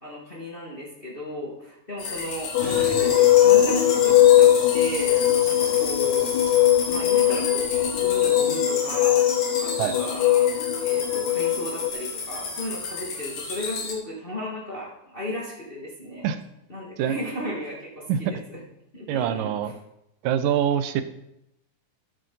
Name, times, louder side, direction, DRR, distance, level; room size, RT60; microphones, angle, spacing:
voice 1, 0.0-6.6 6.9-9.2 9.6-16.3 16.7-18.6 18.9-19.5, equal, 25° left, -4 dB, 1.4 m, -35 dB
sound 1, 2.0-13.9, left 4 dB, 55° left, 2.5 m, -32 dB
sound 2, 2.5-11.9, left 13 dB, 80° left, 1.8 m, -20 dB
sound 3, 2.6-8.2, right 2 dB, 40° right, 3.3 m, -42 dB
voice 2, 19.1-19.7 20.2-21.0, right 9 dB, 90° right, 11 dB, 2.3 m, -24 dB
12.5 x 8.9 x 4.0 m, 0.84 s
omnidirectional pair, 3.9 m